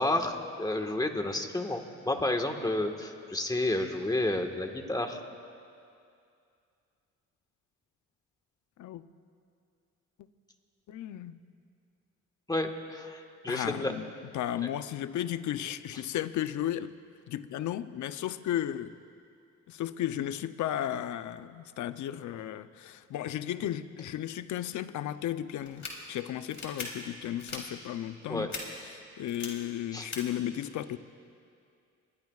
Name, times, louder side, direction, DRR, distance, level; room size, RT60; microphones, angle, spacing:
voice 1, 0.0-5.2 12.5-13.9 14.6-14.7 28.3-28.5 29.9-30.1, left 1 dB, 15° left, 4 dB, 1.5 m, -31 dB
voice 2, 10.9-11.4 13.5-14.1 14.3-16.9 17.3-18.9 19.7-28.5 28.8-31.0, left 11 dB, 75° left, 12 dB, 0.7 m, -34 dB
sound 1, 25.6-25.9 26.5-26.8 27.4-27.6 28.5-28.6 29.3-29.5 30.1-30.2, left 4 dB, 40° left, 3.4 m, -38 dB
27.0 x 21.5 x 2.4 m, 2.4 s
cardioid pair, 90°, 30 cm